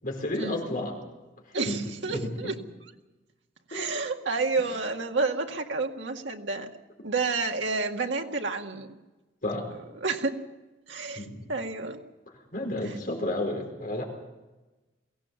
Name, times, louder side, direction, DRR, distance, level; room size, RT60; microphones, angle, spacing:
voice 1, 0.0-1.0 1.6-1.8 2.1-2.5 3.7-3.9 9.4-9.7 11.1-11.5 12.5-14.0, left 1 dB, 50° left, 2 dB, 4.7 m, -31 dB
voice 2, 1.5-2.6 3.7-6.7 7.0-9.0 10.0-10.4 10.9-12.0, right 3 dB, 85° right, 3 dB, 2.0 m, -30 dB
23.0 x 17.0 x 7.1 m, 1.1 s
head